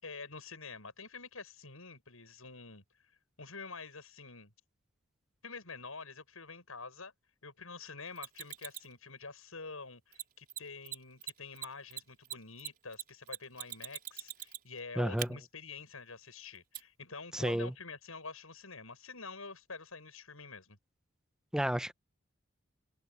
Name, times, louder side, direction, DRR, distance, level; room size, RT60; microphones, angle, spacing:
voice 1, 0.0-2.8 3.4-4.5 5.4-7.1 7.4-20.8, left 4 dB, 85° left, 7.4 m, -47 dB
Mechanisms, 8.2-8.9 10.1-10.2 10.5-10.6 10.8-11.0 11.2-14.8 15.2-15.3 16.7-16.8, right 11 dB, 45° right, 4.3 m, -41 dB
voice 2, 15.0-15.3 17.3-17.7 21.5-21.9, equal, 5° right, 0.8 m, -31 dB
head